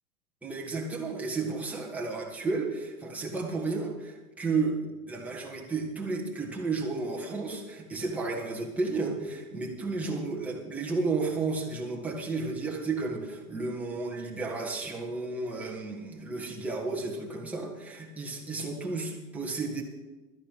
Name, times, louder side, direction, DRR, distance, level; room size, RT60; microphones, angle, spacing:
voice 1, 0.4-4.8 5.1-19.8, right 3 dB, 5° right, -2 dB, 1.8 m, -32 dB
12.0 x 10.0 x 6.6 m, 1.2 s
hypercardioid pair, 150°, 44 cm